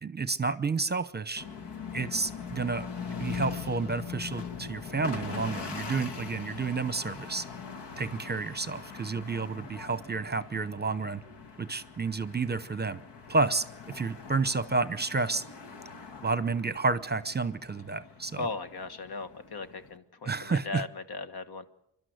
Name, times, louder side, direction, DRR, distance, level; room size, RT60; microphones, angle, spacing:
voice 1, 0.0-1.4 1.9-2.9 3.2-7.4 8.0-11.2 11.6-13.0 13.3-15.4 16.2-18.5 20.2-20.8, right 4 dB, 25° right, 15 dB, 0.8 m, -30 dB
sound 1, 1.4-20.0, left 6 dB, 80° left, 1.7 m, -42 dB
voice 2, 18.4-21.6, left 3 dB, 60° left, 11 dB, 1.4 m, -37 dB
27.0 x 12.0 x 8.0 m, 0.83 s
cardioid pair, 85°, 42 cm